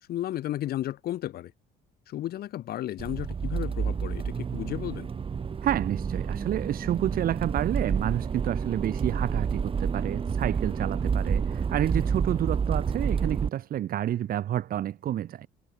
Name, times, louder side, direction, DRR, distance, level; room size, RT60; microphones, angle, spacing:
voice 1, 0.1-1.5 2.1-5.1, left 13 dB, 65° left, 2.5 m, -33 dB
Accelerating revving vroom, 3.0-13.5, right 6 dB, 30° right, 1.9 m, -29 dB
voice 2, 5.6-15.5, right 11 dB, 60° right, 2.1 m, -29 dB
cardioid pair, 110°, 17 cm